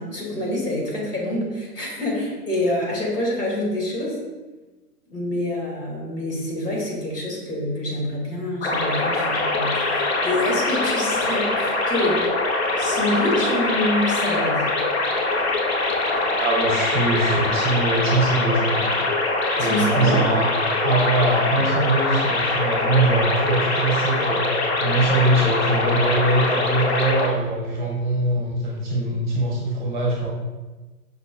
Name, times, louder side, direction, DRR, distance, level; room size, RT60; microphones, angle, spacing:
voice 1, 0.0-4.2 5.1-12.2 12.8-14.7 19.6-20.2, left 1 dB, 85° left, -3 dB, 1.2 m, -26 dB
sound 1, 8.6-27.3, left 2 dB, 45° left, 0.5 m, -23 dB
voice 2, 16.4-18.9 19.5-20.4 20.8-24.4 24.8-30.3, right 2 dB, 30° right, -3 dB, 0.7 m, -22 dB
5.0 x 2.2 x 2.3 m, 1.2 s
figure-of-eight pair, 120°, 46 cm